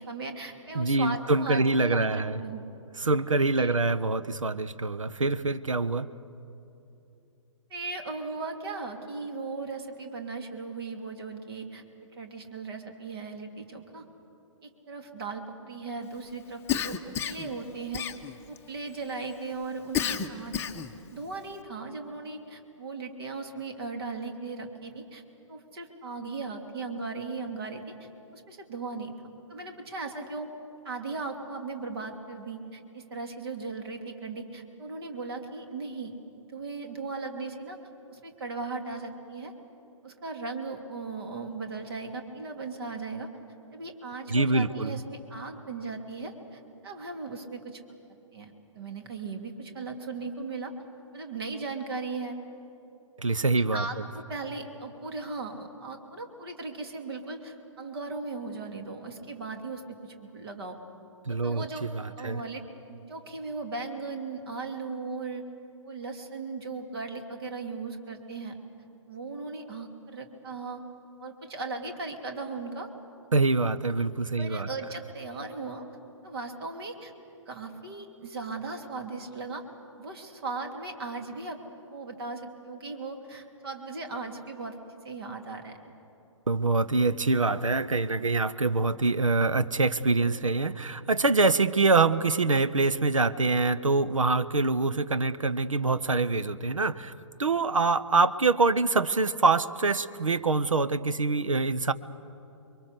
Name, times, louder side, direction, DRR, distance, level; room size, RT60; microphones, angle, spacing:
voice 1, 0.0-2.6 3.6-3.7 7.7-14.0 14.6-18.0 18.5-25.2 25.5-29.1 29.5-30.5 30.8-36.1 36.5-37.8 38.1-39.5 40.0-43.3 43.7-47.8 48.3-50.7 51.1-52.4 53.7-60.8 61.3-61.9 62.2-65.4 65.8-68.5 69.1-70.8 71.2-72.9 74.4-75.8 76.2-77.1 77.5-79.6 80.0-81.6 81.9-84.8 85.0-85.9, right 3 dB, 50° right, 4 dB, 3.0 m, -37 dB
voice 2, 0.7-2.4 3.0-6.1 44.3-45.0 53.2-53.8 61.2-62.4 73.3-74.7 86.5-97.1 97.4-101.9, right 3 dB, 75° right, 13 dB, 0.9 m, -25 dB
Cough, 16.7-17.5 17.9-18.6 19.9-21.0, left 9 dB, 15° left, 0.9 m, -30 dB
30.0 x 23.0 x 6.8 m, 2.8 s
figure-of-eight pair, 125°, 17 cm